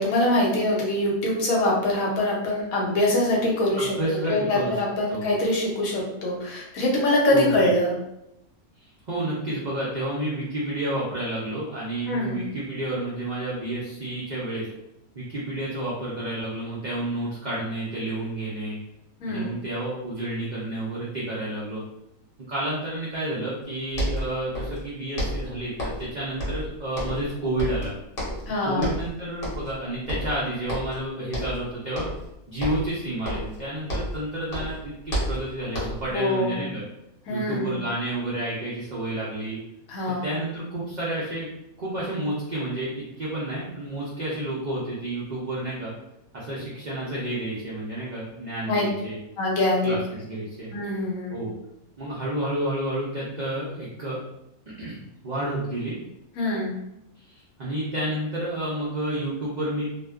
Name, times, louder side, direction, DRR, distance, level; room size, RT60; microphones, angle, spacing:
voice 1, 0.0-4.0 4.3-8.0 12.1-12.5 19.2-19.5 28.5-28.9 36.1-36.7 37.3-37.8 39.9-40.3 48.7-48.9 49.4-50.0 50.7-51.4 56.4-56.7, left 1 dB, 70° left, -2 dB, 1.1 m, -24 dB
voice 2, 3.8-4.8 5.1-5.3 7.3-7.7 9.1-14.7 15.1-18.8 19.3-21.8 22.5-25.7 26.0-27.9 28.6-32.1 32.5-36.8 37.3-39.6 40.2-41.5 41.8-45.9 46.3-49.2 49.8-50.7 51.3-51.5 52.0-54.2 54.8-56.0 57.2-59.9, right 1 dB, 90° right, -7 dB, 0.4 m, -30 dB
sound 1, 23.6-23.7 23.9-24.9 25.2-26.1 26.4-27.3 27.6-28.5 28.8-29.1 29.4-29.8 30.1-31.0 31.3-31.6 31.9-32.3 32.6-34.2 34.5-36.1, equal, 45° left, 1.0 m, -30 dB
2.5 x 2.2 x 2.3 m, 0.83 s
omnidirectional pair, 1.5 m